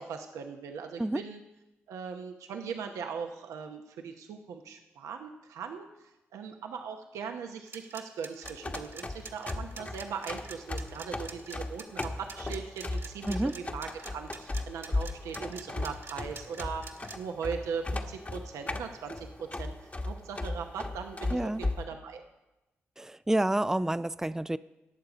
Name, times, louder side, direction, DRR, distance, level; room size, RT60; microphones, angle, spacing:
voice 1, 0.0-1.4 1.9-5.9 6.3-22.2, right 6 dB, 80° right, 4 dB, 0.9 m, -39 dB
sound 1, 7.7-17.2, right 4 dB, 50° right, 1.5 m, -45 dB
sound 2, 8.4-21.8, left 2 dB, 30° left, 1.2 m, -37 dB
voice 2, 21.3-21.6 23.0-24.6, right 1 dB, 10° right, 15 dB, 0.4 m, -29 dB
19.0 x 7.0 x 5.0 m, 1.0 s
supercardioid pair, 50°, 5 cm